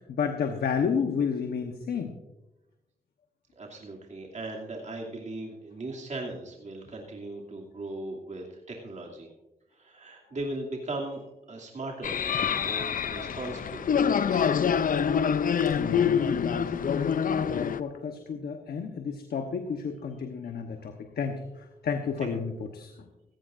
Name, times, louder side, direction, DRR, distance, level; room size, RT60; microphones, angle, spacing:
voice 1, 0.0-2.1 15.7-23.1, left 6 dB, 90° left, 5 dB, 1.1 m, -31 dB
voice 2, 3.6-9.3 9.7-14.6 22.2-22.3, right 2 dB, 50° right, -1 dB, 2.7 m, -38 dB
sound 1, 12.0-17.8, left 7 dB, 60° left, 0.5 m, -26 dB
16.0 x 15.5 x 2.6 m, 0.97 s
cardioid pair, 75°, 16 cm